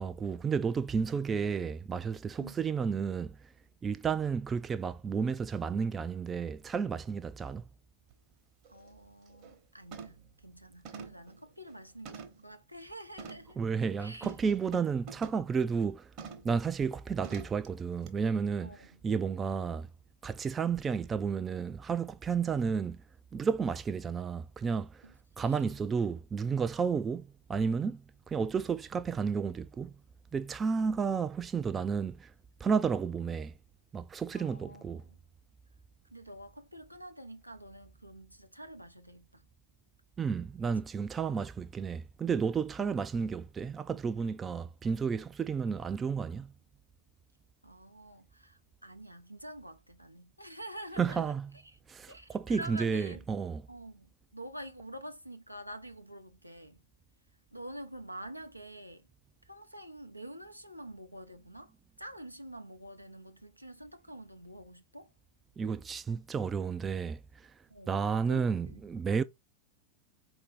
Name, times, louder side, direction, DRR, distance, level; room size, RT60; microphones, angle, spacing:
voice 1, 0.0-3.4 3.8-7.6 13.6-16.1 16.4-18.7 19.0-19.9 20.2-23.0 23.3-25.1 25.4-30.0 30.3-32.3 32.6-33.5 33.9-35.0 40.2-46.5 51.0-51.5 51.9-53.6 65.6-67.5 67.9-69.2, right 6 dB, 20° right, 0.3 m, -32 dB
sound 1, 8.1-8.2 8.6-8.9 9.3-9.6 9.9-10.3 10.9-12.5 13.2-13.5 14.2-15.5 16.2-16.6 17.2-17.7 18.1-18.2, right 5 dB, 40° right, 1.0 m, -47 dB
voice 2, 8.7-13.6 14.0-14.3 18.6-19.0 25.0-25.8 34.3-35.2 36.1-39.5 47.6-51.3 52.1-53.2 53.7-56.8 57.5-59.1 59.4-65.1 67.7-68.8, right 1 dB, 90° right, 0.5 m, -47 dB
4.4 x 2.6 x 3.4 m
figure-of-eight pair, 90°, 0 cm